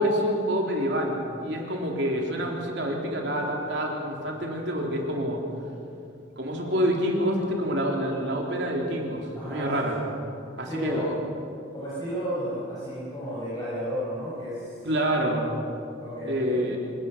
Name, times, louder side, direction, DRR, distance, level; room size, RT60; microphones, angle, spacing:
voice 1, 0.0-5.4 6.4-10.0 10.6-11.1 14.8-15.5 16.3-16.8, equal, 60° right, 0 dB, 3.7 m, -27 dB
voice 2, 9.3-10.1 10.6-11.2 11.7-14.8 16.0-16.7, equal, 20° left, -10 dB, 7.1 m, -33 dB
26.5 x 19.0 x 6.8 m, 2.6 s
head